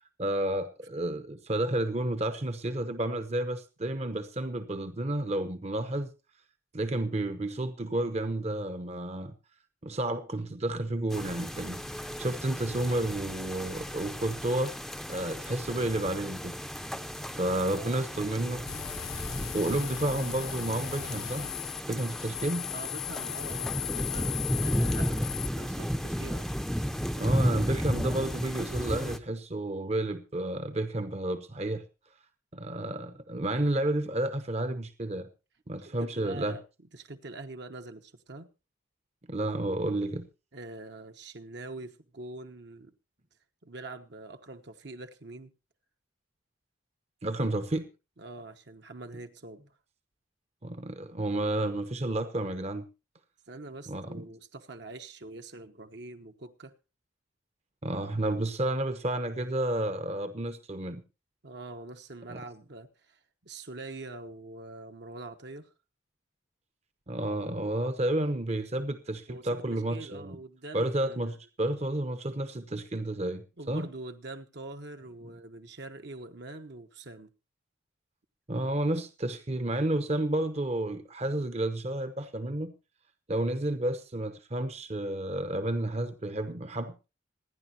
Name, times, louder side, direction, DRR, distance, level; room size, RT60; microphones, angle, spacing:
voice 1, 0.2-6.1 6.7-9.3 9.8-14.7 15.1-16.6 17.4-18.6 19.2-21.5 21.9-22.7 27.0-31.8 32.5-35.3 35.7-36.6 39.3-40.3 47.2-47.9 50.6-52.9 53.9-54.2 57.8-61.0 62.3-62.4 67.1-70.4 70.7-73.9 78.5-82.7 83.3-87.1, right 1 dB, 30° right, 0.9 m, -31 dB
sound 1, 11.1-29.2, equal, ahead, 0.6 m, -34 dB
voice 2, 17.7-18.3 22.7-24.4 24.6-25.3 25.6-26.5 35.8-36.6 36.9-38.5 40.5-42.9 43.6-45.5 48.2-49.6 53.5-56.7 61.4-65.7 69.3-71.4 73.6-77.3, right 2 dB, 55° right, 1.1 m, -44 dB
sound 2, 18.7-25.5, left 14 dB, 85° left, 0.7 m, -38 dB
26.5 x 10.5 x 2.9 m
head